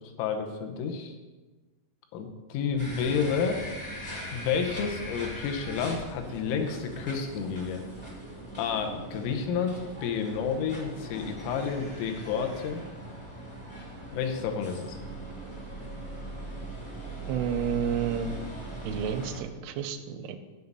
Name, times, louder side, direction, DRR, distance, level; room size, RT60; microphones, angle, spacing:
voice 1, 0.2-1.2 2.1-3.6 4.3-7.8 8.6-12.8 14.1-15.0, left 6 dB, 85° left, 4 dB, 3.6 m, -30 dB
sound 1, 2.8-19.4, right 1 dB, 25° left, 0.5 m, -40 dB
voice 2, 17.3-18.3 18.8-20.4, right 8 dB, 80° right, 7 dB, 3.0 m, -30 dB
9.4 x 5.4 x 8.2 m, 1.2 s
omnidirectional pair, 6.0 m